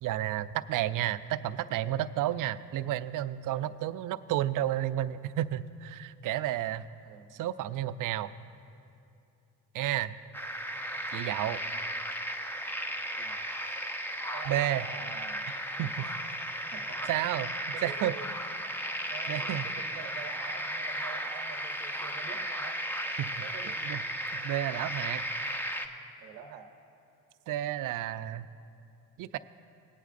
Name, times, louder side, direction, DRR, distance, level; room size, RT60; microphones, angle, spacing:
voice 1, 0.0-6.9 7.4-8.3 9.7-10.2 11.1-11.6 14.5-14.9 15.8-16.1 17.1-17.5 17.8-18.1 19.3-19.7 23.2-23.3 23.8-24.0 24.4-25.2 27.5-28.5 29.2-29.4, right 13 dB, 55° right, 13 dB, 0.5 m, -31 dB
voice 2, 7.0-7.3 13.2-13.4 14.3-15.5 16.7-17.2 17.7-18.3 19.1-22.7 23.3-23.8 26.2-26.7, right 7 dB, 90° right, 4 dB, 0.8 m, -46 dB
sound 1, 10.3-25.9, equal, 5° left, 0.7 m, -35 dB
19.5 x 9.1 x 2.5 m, 2.6 s
supercardioid pair, 80°, 38 cm